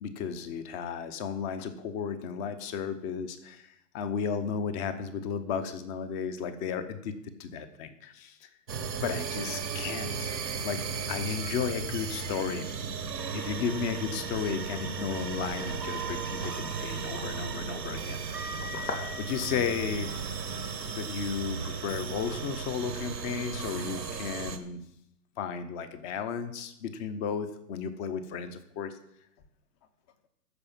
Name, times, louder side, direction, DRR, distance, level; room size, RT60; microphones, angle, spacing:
voice 1, 0.0-7.1 7.4-8.5 8.9-12.7 13.3-18.4 18.8-20.1 20.9-24.8 25.4-29.0, left 7 dB, 25° left, 11 dB, 0.8 m, -34 dB
sound 1, 8.7-24.6, right 5 dB, 85° right, 1.4 m, -35 dB
sound 2, 13.5-23.9, left 2 dB, 85° left, 2.8 m, -47 dB
13.0 x 4.9 x 7.3 m, 0.77 s
hypercardioid pair, 125°, 49 cm